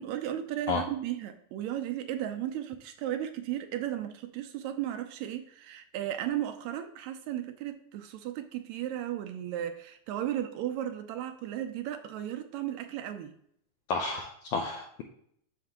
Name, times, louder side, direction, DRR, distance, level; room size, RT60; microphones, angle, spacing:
voice 1, 0.0-13.3, right 11 dB, 75° right, 7 dB, 1.8 m, -35 dB
voice 2, 13.9-15.0, left 4 dB, 85° left, 2 dB, 1.3 m, -31 dB
7.4 x 6.3 x 2.9 m, 0.68 s
omnidirectional pair, 3.5 m